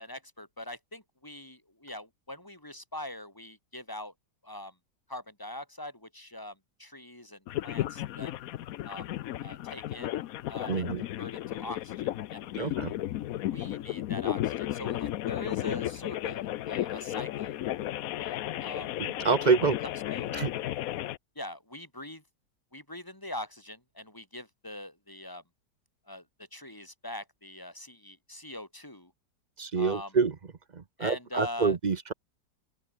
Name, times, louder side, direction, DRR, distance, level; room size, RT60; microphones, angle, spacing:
voice 1, 0.0-4.1 4.4-4.7 5.1-8.4 8.8-9.1 9.4-10.2 10.5-10.9 11.2-12.7 13.5-17.6 18.0-18.9 20.1-20.3 21.4-22.2 22.7-25.4 26.1-29.1 29.8-30.1 31.0-31.8, left 1 dB, 10° left, 4.2 m, -42 dB
sound 1, 7.5-21.2, left 13 dB, 65° left, 0.9 m, -34 dB
voice 2, 10.7-11.0 12.6-12.9 19.0-19.8 20.3-20.5 29.6-30.3 30.7-32.1, right 5 dB, 40° right, 0.6 m, -27 dB
open air
omnidirectional pair, 1.9 m